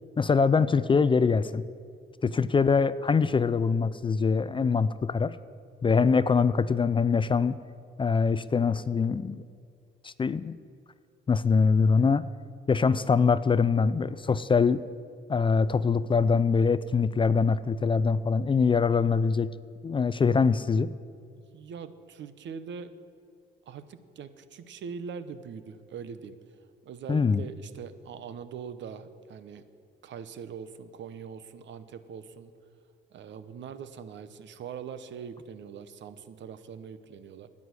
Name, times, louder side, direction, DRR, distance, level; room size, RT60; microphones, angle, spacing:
voice 1, 0.2-1.6 2.2-5.4 5.8-7.5 8.0-9.4 10.0-10.6 11.3-12.3 12.7-14.8 15.3-19.5 19.8-20.9 27.1-27.4, left 5 dB, 25° left, 16 dB, 0.4 m, -23 dB
voice 2, 21.5-22.9 23.7-26.4 26.8-29.6 30.0-32.5 33.1-37.5, right 6 dB, 65° right, 12 dB, 0.9 m, -42 dB
10.5 x 8.5 x 9.7 m, 2.3 s
cardioid pair, 90°, 20 cm